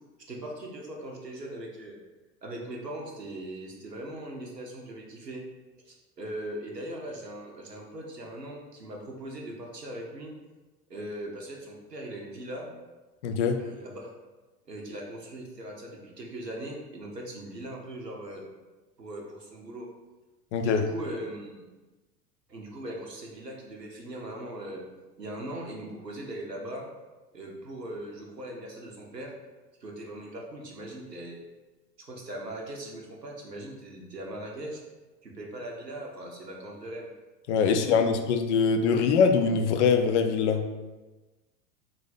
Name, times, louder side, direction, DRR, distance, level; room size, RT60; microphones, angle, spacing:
voice 1, 0.3-2.0 2.4-5.4 5.9-10.3 10.9-12.7 13.6-14.1 14.7-18.4 19.0-19.9 20.6-21.6 22.5-24.8 25.2-26.9 27.3-29.3 29.8-31.4 32.0-34.8 35.2-37.1 37.6-38.0, right 1 dB, 90° right, -1 dB, 0.8 m, -40 dB
voice 2, 13.2-13.6 20.5-20.9 37.5-40.7, left 5 dB, 50° left, 6 dB, 0.5 m, -23 dB
3.9 x 2.6 x 4.0 m, 1.2 s
figure-of-eight pair, 80°, 47 cm